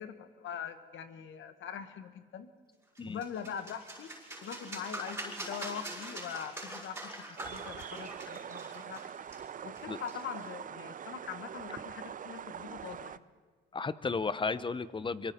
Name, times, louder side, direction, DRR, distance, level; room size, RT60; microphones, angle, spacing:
voice 1, 0.0-2.5 3.1-4.1 4.4-9.0 9.6-13.2, left 8 dB, 75° left, 9 dB, 1.6 m, -42 dB
sound 1, 2.9-10.5, right 1 dB, 10° right, 6.4 m, -44 dB
sound 2, 7.4-13.2, right 8 dB, 45° right, 0.6 m, -44 dB
voice 2, 13.7-15.3, left 4 dB, 25° left, 16 dB, 0.8 m, -34 dB
25.5 x 23.5 x 4.4 m, 1.5 s
cardioid pair, 90°, 20 cm